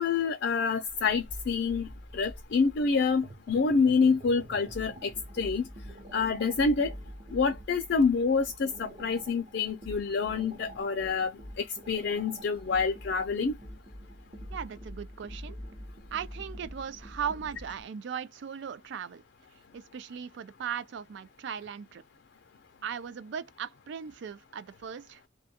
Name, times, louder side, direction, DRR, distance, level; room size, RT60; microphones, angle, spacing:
voice 1, 0.0-1.9 2.1-5.6 6.1-6.9 7.3-13.5, left 5 dB, 60° left, 0.4 m, -27 dB
sound 1, 0.9-17.8, equal, 35° right, 0.8 m, -46 dB
voice 2, 14.5-15.6 16.1-19.2 19.7-22.0 22.8-25.3, right 7 dB, 65° right, 0.3 m, -38 dB
2.3 x 2.2 x 2.7 m
head